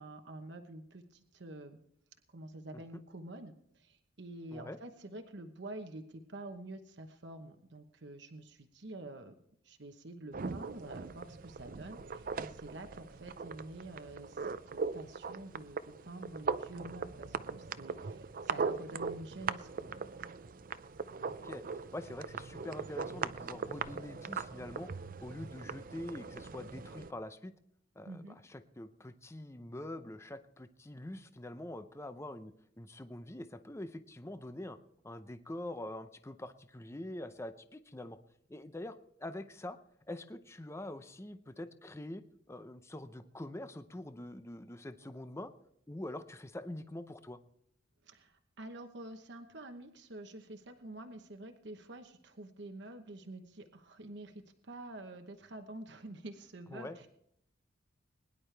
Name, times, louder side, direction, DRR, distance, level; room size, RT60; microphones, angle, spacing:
voice 1, 0.0-1.8 2.3-9.4 9.6-19.9 28.1-28.4 48.0-57.1, right 2 dB, 65° right, 6 dB, 1.0 m, -48 dB
sound 1, 10.3-27.1, right 5 dB, 45° right, 0.5 m, -40 dB
voice 2, 21.3-24.9 25.2-27.5 28.0-34.8 35.0-38.2 38.5-39.8 40.1-45.5 45.9-47.4 56.7-57.0, left 1 dB, 15° left, 10 dB, 0.6 m, -45 dB
22.0 x 11.0 x 3.4 m, 0.72 s
head